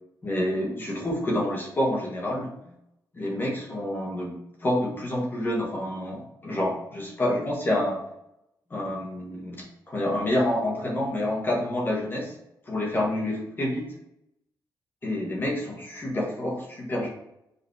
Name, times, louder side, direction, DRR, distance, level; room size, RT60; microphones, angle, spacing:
voice 1, 0.2-2.5 3.1-8.0 8.7-12.3 12.6-13.9 15.0-17.1, left 1 dB, 25° left, -2 dB, 1.5 m, -28 dB
5.3 x 4.1 x 4.8 m, 0.83 s
wide cardioid pair, 145°, 8 cm